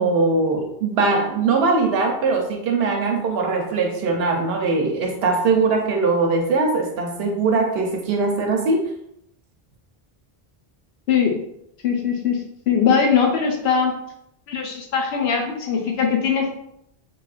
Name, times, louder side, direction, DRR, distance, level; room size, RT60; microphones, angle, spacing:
voice 1, 0.0-8.9, right 3 dB, 75° right, 2 dB, 0.8 m, -21 dB
voice 2, 11.8-12.4 12.7-13.9 14.5-16.5, left 6 dB, 90° left, 1 dB, 0.9 m, -20 dB
3.1 x 2.3 x 2.3 m, 0.77 s
omnidirectional pair, 1.0 m